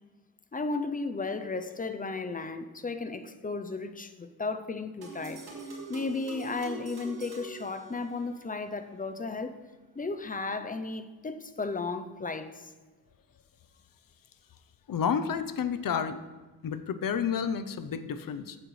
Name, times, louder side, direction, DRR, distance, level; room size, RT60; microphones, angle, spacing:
voice 1, 0.5-5.4 5.9-9.6 10.0-12.7, left 3 dB, 25° left, 0.5 m, -34 dB
sound 1, 5.0-8.5, right 2 dB, 85° right, 2.8 m, -43 dB
voice 2, 14.9-16.2 16.6-18.6, left 7 dB, 60° left, 0.7 m, -30 dB
15.0 x 8.9 x 3.2 m
wide cardioid pair, 165°, 37 cm